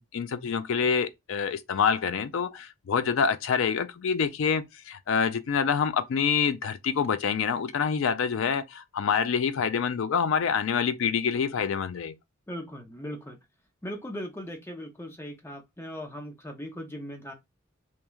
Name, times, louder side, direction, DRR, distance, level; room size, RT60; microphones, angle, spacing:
voice 1, 0.0-12.1, left 6 dB, 60° left, 0.4 m, -26 dB
voice 2, 12.5-13.4 13.8-17.3, equal, 10° left, 0.5 m, -39 dB
3.0 x 2.2 x 2.3 m
head